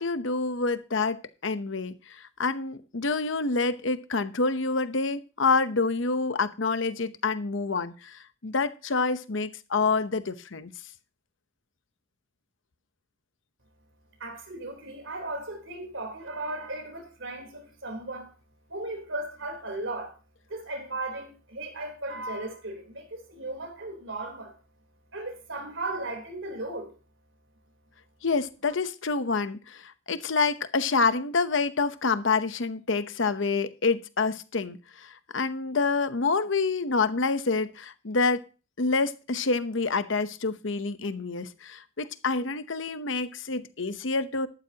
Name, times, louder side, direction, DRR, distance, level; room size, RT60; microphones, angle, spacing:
voice 1, 0.0-10.7 28.2-38.5 38.8-44.5, left 4 dB, 65° left, 0.9 m, -27 dB
voice 2, 14.2-18.3 18.7-20.1 20.5-24.5 25.1-26.9, right 2 dB, 70° right, 3.7 m, -36 dB
13.0 x 12.0 x 2.9 m
head